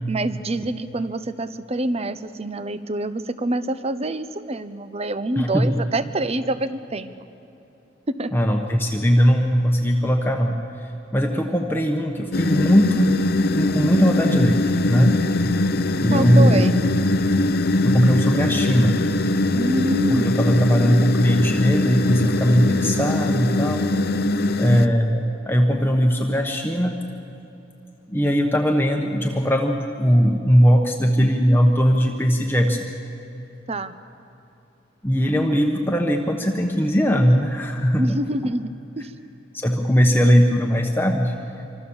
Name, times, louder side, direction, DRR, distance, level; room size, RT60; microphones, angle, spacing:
voice 1, 0.1-7.1 8.1-8.3 16.1-16.7 19.5-20.4 33.7-33.9 38.0-39.1, right 1 dB, 35° right, 13 dB, 0.8 m, -26 dB
voice 2, 5.4-5.8 8.3-13.1 13.5-15.1 16.0-16.8 17.8-19.0 20.1-23.8 24.6-27.0 28.1-32.9 35.0-38.5 39.5-41.3, equal, 10° left, 2 dB, 1.1 m, -19 dB
sound 1, 12.3-24.9, left 2 dB, 55° left, 0.8 m, -22 dB
25.5 x 25.5 x 7.2 m, 2.8 s
head